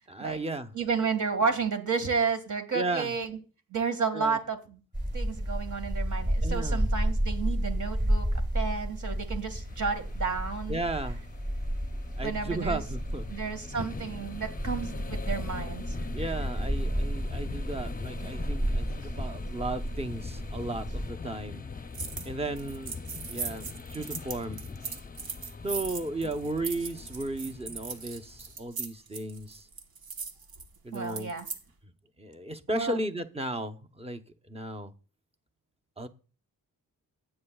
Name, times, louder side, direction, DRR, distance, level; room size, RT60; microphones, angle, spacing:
voice 1, 0.1-0.7 2.7-3.1 4.1-4.4 6.4-6.9 10.7-11.2 12.2-13.4 16.1-21.6 22.2-23.0 23.3-24.6 25.6-29.7 30.8-31.3 32.2-34.2 34.5-34.9 36.0-36.1, right 2 dB, 15° right, 8 dB, 0.9 m, -35 dB
voice 2, 0.7-3.4 3.7-4.8 5.1-11.2 12.2-12.9 13.3-16.0 25.8-25.9 30.9-31.5 32.7-33.0, right 5 dB, 55° right, 7 dB, 2.0 m, -32 dB
sound 1, 4.9-21.1, equal, 35° right, 5.2 m, -32 dB
sound 2, 9.5-28.6, left 5 dB, 25° left, 0.6 m, -42 dB
sound 3, 21.9-22.3 22.6-31.6, right 5 dB, 80° right, 1.3 m, -39 dB
15.5 x 8.9 x 2.3 m, 0.35 s
wide cardioid pair, 90°, 36 cm